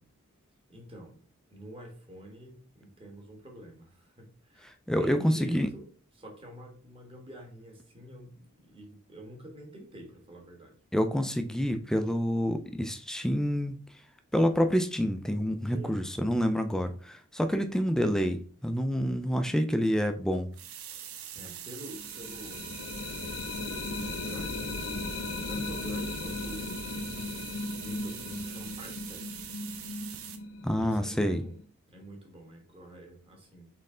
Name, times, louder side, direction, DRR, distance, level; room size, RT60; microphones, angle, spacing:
voice 1, 0.7-1.2 1.5-5.9 6.1-10.7 15.7-16.4 21.3-22.7 23.6-25.2 25.5-27.1 27.8-29.4 30.8-31.6 31.9-33.7, right 1 dB, 25° right, 1 dB, 1.3 m, -47 dB
voice 2, 4.9-5.7 10.9-13.8 14.3-20.5 30.6-31.4, equal, 5° left, 7 dB, 0.4 m, -27 dB
sound 1, 20.5-30.4, right 10 dB, 80° right, 0.6 m, -43 dB
sound 2, 21.9-31.6, left 3 dB, 80° left, 0.6 m, -37 dB
4.3 x 3.2 x 3.7 m, 0.43 s
head